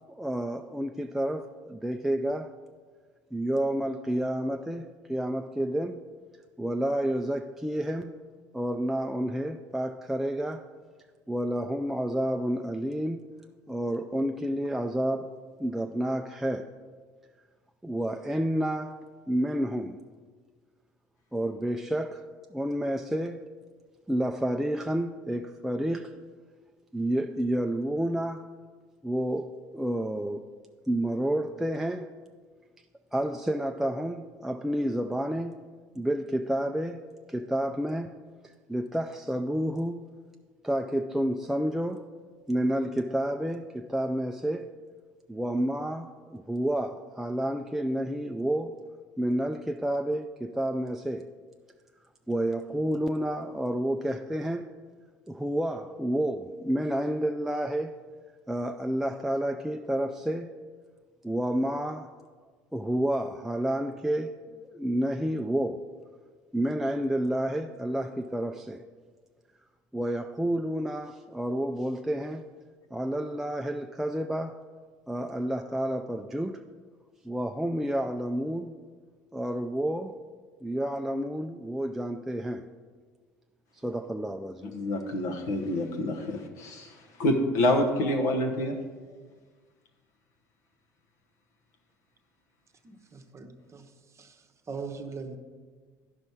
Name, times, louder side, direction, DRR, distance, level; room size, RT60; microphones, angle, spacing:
voice 1, 0.1-2.5 3.3-6.0 6.6-8.2 8.5-10.6 11.3-13.3 13.7-15.3 15.6-16.7 17.8-19.0 19.3-20.0 21.3-22.2 22.5-23.5 24.1-26.2 26.9-28.5 29.0-30.5 30.9-32.1 33.1-35.6 36.0-37.0 37.3-38.1 38.7-40.1 40.6-42.1 42.5-44.7 45.3-48.8 49.2-51.3 52.3-54.7 55.3-57.9 58.5-60.5 61.2-62.1 62.7-65.8 66.5-68.8 69.9-72.4 72.9-74.6 75.1-76.6 77.2-78.8 79.3-80.2 80.6-82.7 83.8-84.7, right 1 dB, 5° right, 0.4 m, -30 dB
voice 2, 84.7-86.9 87.2-88.8, left 1 dB, 75° left, 0.9 m, -27 dB
voice 3, 92.8-93.9 94.2-94.3 94.7-95.4, right 5 dB, 30° right, 0.8 m, -40 dB
11.0 x 5.3 x 4.5 m
hypercardioid pair, 65°, 10 cm